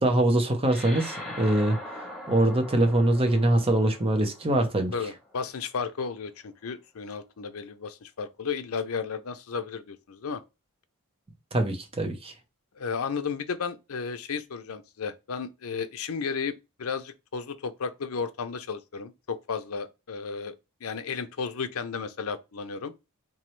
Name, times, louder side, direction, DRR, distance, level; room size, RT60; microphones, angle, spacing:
voice 1, 0.0-1.8 2.3-4.9 11.5-12.3, right 1 dB, 25° right, 0.8 m, -23 dB
sound 1, 0.7-5.4, left 1 dB, ahead, 1.0 m, -42 dB
voice 2, 4.9-10.4 12.8-16.5 16.8-20.5 20.8-22.9, left 5 dB, 75° left, 0.6 m, -33 dB
3.7 x 3.1 x 3.1 m
head